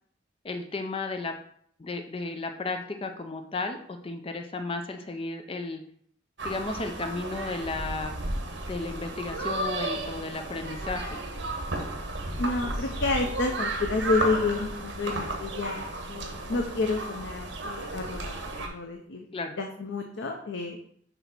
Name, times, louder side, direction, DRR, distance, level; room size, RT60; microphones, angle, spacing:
voice 1, 0.4-1.3 1.8-3.8 4.0-5.8 6.4-8.1 8.6-11.2 19.3-19.5, left 3 dB, 30° left, 5 dB, 0.5 m, -33 dB
sound 1, 6.4-18.7, right 2 dB, 75° right, 1.2 m, -33 dB
voice 2, 12.3-19.3 19.6-20.8, left 3 dB, 90° left, 3 dB, 0.7 m, -30 dB
6.9 x 2.9 x 5.8 m, 0.63 s
head